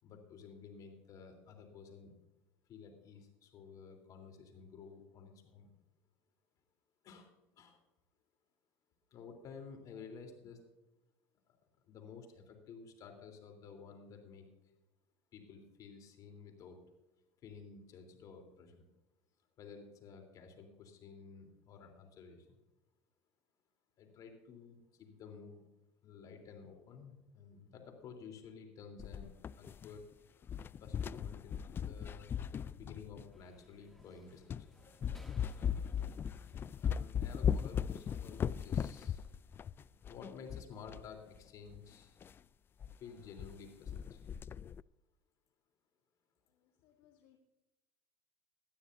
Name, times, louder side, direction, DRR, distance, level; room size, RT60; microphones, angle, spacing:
voice 1, 0.0-2.1 2.7-5.7 7.0-7.8 9.1-10.6 11.5-11.6 11.9-14.5 15.3-16.8 17.4-18.9 19.6-22.6 24.0-25.6 26.0-30.0 30.8-34.7 36.8-39.3 40.1-42.2 43.0-44.2, left 5 dB, 50° left, 4 dB, 3.5 m, -53 dB
sound 1, 29.0-30.1 30.4-33.4 34.0-34.1 34.5-34.7 35.0-41.1 41.3-41.4 41.7-41.8 42.2-42.4 42.8-42.9 43.2-43.6 43.9-44.8, left 8 dB, 30° left, 0.3 m, -38 dB
sound 2, 33.3-39.1, left 1 dB, 5° left, 2.0 m, -65 dB
voice 2, 46.5-47.4, left 11 dB, 70° left, 4 dB, 1.4 m, -68 dB
19.5 x 12.5 x 2.7 m, 0.99 s
supercardioid pair, 100°, 8 cm